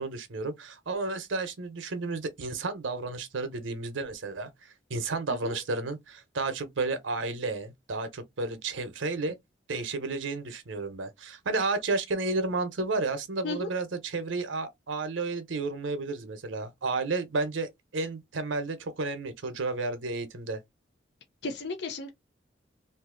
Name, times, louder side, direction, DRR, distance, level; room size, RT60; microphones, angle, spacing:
voice 1, 0.0-9.4 9.7-20.6, right 3 dB, 90° right, 0.8 m, -32 dB
voice 2, 21.4-22.1, left 3 dB, 65° left, 0.6 m, -34 dB
2.8 x 2.7 x 3.7 m
head